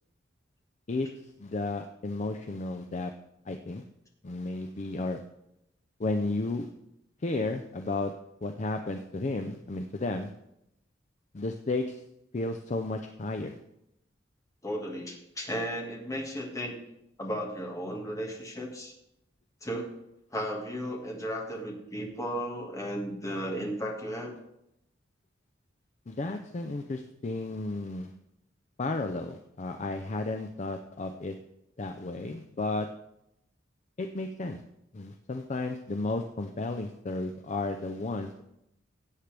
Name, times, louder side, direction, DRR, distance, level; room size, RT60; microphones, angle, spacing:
voice 1, 1.4-3.1 3.5-3.8 4.2-5.2 6.0-6.7 7.2-8.1 8.4-10.3 11.3-12.0 12.3-13.6 26.1-28.1 28.8-31.4 31.8-32.9 34.0-34.6 34.9-38.4, left 2 dB, 35° left, 6 dB, 0.5 m, -33 dB
voice 2, 14.6-16.7 17.2-18.9 19.6-19.9 20.3-24.3, equal, 15° left, 0 dB, 1.8 m, -34 dB
16.0 x 8.2 x 3.4 m, 0.83 s
head